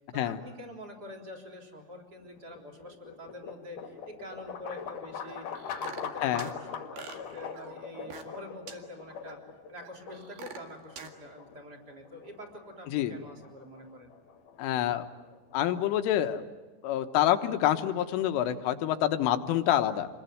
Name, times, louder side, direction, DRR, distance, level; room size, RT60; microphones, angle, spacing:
voice 1, 0.1-9.4 9.7-14.1, left 1 dB, 20° right, 1 dB, 3.5 m, -46 dB
sound 1, 2.2-16.3, left 6 dB, 50° left, 2.8 m, -43 dB
sound 2, 5.3-6.6 7.0-8.4 8.7-8.8 9.3-9.4 9.8-11.1, right 7 dB, 55° right, 3.3 m, -45 dB
voice 2, 14.6-15.1 15.5-16.4 16.8-20.1, left 12 dB, 80° left, 8 dB, 3.6 m, -27 dB
28.0 x 22.0 x 9.4 m, 1.2 s
omnidirectional pair, 5.7 m